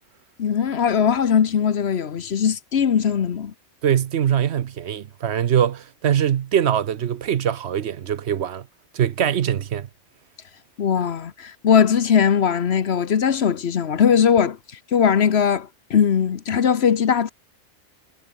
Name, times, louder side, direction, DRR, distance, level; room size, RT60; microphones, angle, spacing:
voice 1, 0.4-3.5 10.8-14.6 14.9-17.3, left 7 dB, 60° left, 1.2 m, -19 dB
voice 2, 3.8-8.6 8.9-9.9, right 9 dB, 65° right, 1.0 m, -22 dB
omnidirectional pair, 1.3 m